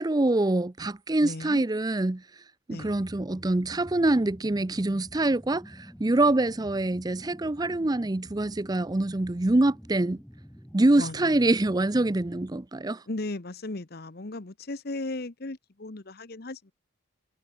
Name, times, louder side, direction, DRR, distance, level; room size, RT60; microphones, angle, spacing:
voice 1, 0.0-2.2 2.7-10.2 10.7-13.0, right 2 dB, 20° right, 0.5 m, -25 dB
voice 2, 1.2-1.6 2.7-2.9 10.9-11.4 13.1-16.7, left 2 dB, 50° left, 1.1 m, -36 dB
sound 1, 2.8-12.5, equal, 5° left, 2.9 m, -48 dB
head